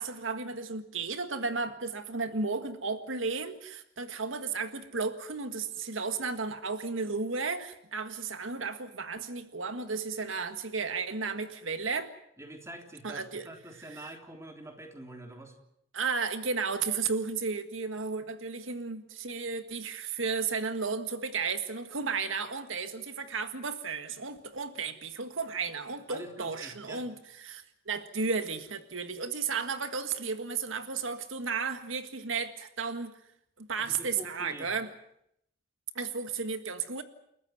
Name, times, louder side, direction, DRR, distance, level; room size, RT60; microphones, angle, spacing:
voice 1, 0.0-12.1 13.0-13.5 13.9-14.0 15.9-33.2 33.6-34.9 35.9-37.0, right 4 dB, 85° right, 1.8 m, -34 dB
voice 2, 12.4-15.5 26.1-27.0 33.8-34.7, right 1 dB, 15° right, 3.5 m, -46 dB
29.5 x 14.0 x 9.4 m
head